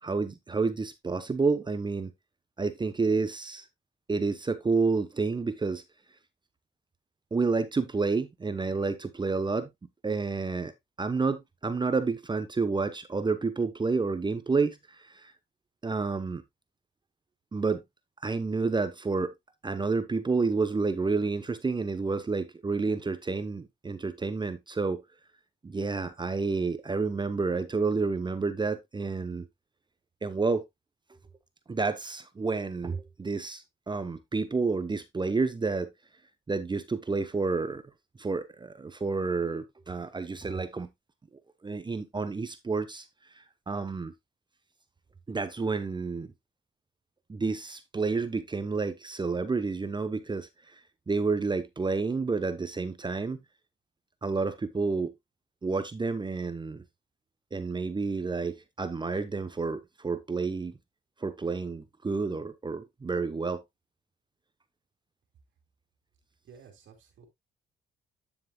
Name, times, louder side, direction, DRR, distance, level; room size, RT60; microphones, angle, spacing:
voice 1, 0.0-2.1 2.6-3.7 4.1-5.8 7.3-9.7 10.0-10.7 11.0-15.3 15.8-16.4 17.5-17.8 18.2-19.3 19.6-25.0 25.6-29.5 30.2-30.6 31.7-35.9 36.5-37.8 38.2-40.9 41.6-43.0 43.3-44.1 45.3-46.3 47.3-50.8 51.1-53.4 54.2-55.1 55.6-56.8 57.5-60.8 61.2-63.6, right 4 dB, 20° right, 0.9 m, -30 dB
voice 2, 66.4-67.3, right 6 dB, 70° right, 2.8 m, -53 dB
9.5 x 7.3 x 2.3 m
cardioid pair, 90°, 20 cm